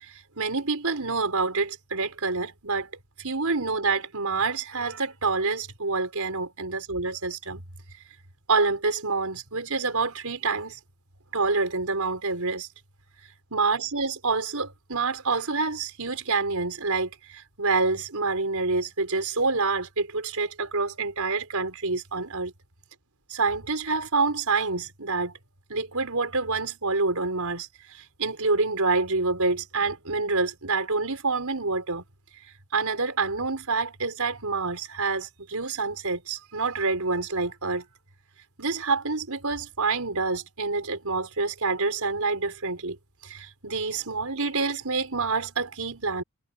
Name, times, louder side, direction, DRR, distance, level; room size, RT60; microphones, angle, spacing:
voice 1, 0.0-2.9 3.2-7.6 8.5-10.8 11.3-12.7 13.5-22.5 23.3-25.3 25.7-32.0 32.7-37.8 38.6-43.0 43.2-46.2, right 4 dB, 85° right, 4.5 m, -27 dB
head